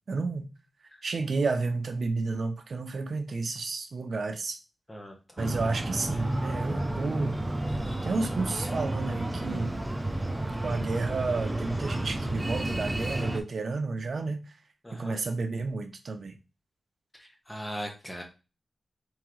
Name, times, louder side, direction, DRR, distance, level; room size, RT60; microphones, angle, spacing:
voice 1, 0.1-0.5 1.0-4.6 5.4-7.4 8.0-9.7 10.6-14.5 14.9-16.4, right 3 dB, 60° right, 0.6 m, -31 dB
Breathing, 5.4-13.4, right 1 dB, 15° right, 0.4 m, -31 dB
voice 2, 17.2-18.2, equal, 10° left, 1.0 m, -39 dB
3.6 x 3.6 x 3.1 m
wide cardioid pair, 135°, 0 cm